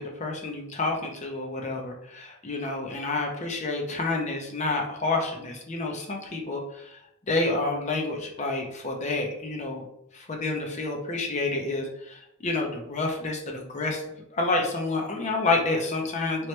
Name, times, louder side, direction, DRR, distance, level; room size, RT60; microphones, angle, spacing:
voice 1, 0.0-7.0 7.3-9.8 10.1-14.0 14.3-16.5, left 3 dB, 35° left, 1 dB, 0.7 m, -29 dB
3.1 x 3.0 x 3.1 m, 0.80 s
head